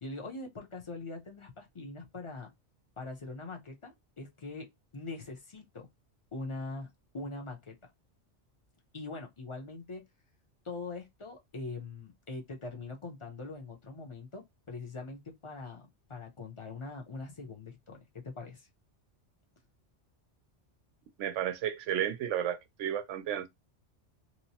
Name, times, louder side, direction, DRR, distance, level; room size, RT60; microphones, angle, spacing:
voice 1, 0.0-2.5 3.0-5.9 6.3-6.9 7.1-7.9 8.9-10.0 10.6-18.7, left 3 dB, 35° left, 0.6 m, -42 dB
voice 2, 21.2-23.5, right 10 dB, 85° right, 0.9 m, -32 dB
2.9 x 2.0 x 2.7 m
omnidirectional pair, 1.2 m